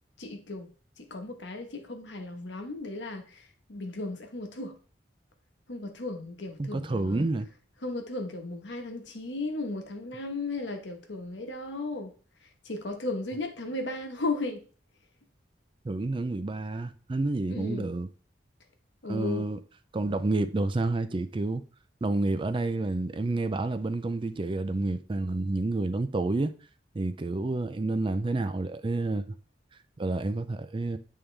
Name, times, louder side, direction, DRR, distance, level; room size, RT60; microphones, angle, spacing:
voice 1, 0.2-0.7 1.0-3.4 3.7-4.8 5.7-7.2 7.8-12.1 12.6-14.6 17.5-17.9 19.0-19.4, left 2 dB, 80° left, 1.1 m, -35 dB
voice 2, 6.6-7.5 15.8-18.1 19.1-19.6 19.9-21.6 22.0-26.5 26.9-29.3 30.0-31.0, right 2 dB, 30° right, 0.4 m, -29 dB
8.9 x 3.7 x 3.3 m
head